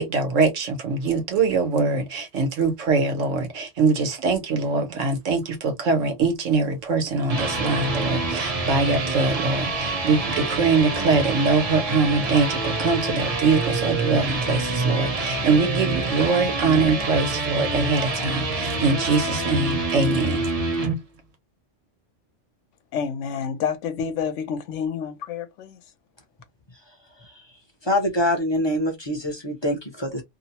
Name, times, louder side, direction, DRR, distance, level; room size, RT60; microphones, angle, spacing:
voice 1, 0.0-20.5, right 4 dB, 90° right, 1.2 m, -23 dB
sound 1, 7.0-20.9, right 3 dB, 35° right, 0.7 m, -26 dB
voice 2, 22.9-25.8, left 7 dB, 75° left, 0.9 m, -28 dB
voice 3, 27.8-30.2, left 1 dB, 30° left, 0.6 m, -25 dB
2.7 x 2.0 x 2.7 m
omnidirectional pair, 1.3 m